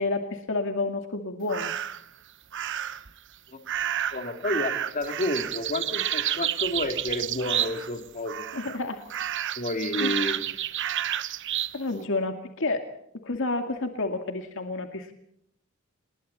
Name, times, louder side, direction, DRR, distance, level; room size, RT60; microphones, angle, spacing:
voice 1, 0.0-1.7 8.5-9.0 10.0-10.1 11.7-12.8 13.2-15.1, left 2 dB, 65° left, 6 dB, 2.3 m, -30 dB
sound 1, 1.5-2.0 2.5-3.1 3.7-8.0 8.3-8.8 9.1-11.8, right 10 dB, 60° right, 1.1 m, -30 dB
voice 2, 4.1-8.5 9.6-10.4 11.9-12.0, left 1 dB, 40° left, 6 dB, 3.1 m, -30 dB
29.0 x 21.0 x 4.3 m, 0.71 s
head